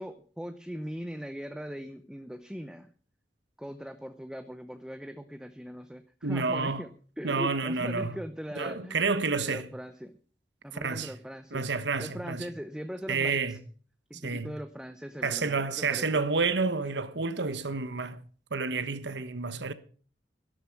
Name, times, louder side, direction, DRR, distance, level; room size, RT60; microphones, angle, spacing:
voice 1, 0.0-2.9 3.6-6.9 7.2-9.1 9.3-10.1 10.6-11.7 12.0-13.6 14.1-16.1, equal, 5° right, 0.6 m, -40 dB
voice 2, 6.2-6.8 7.2-8.1 8.6-9.7 10.8-11.1 11.5-12.4 13.1-13.6 14.2-14.5 15.2-18.2 18.5-19.7, right 4 dB, 75° right, 1.2 m, -29 dB
12.5 x 12.0 x 5.9 m
head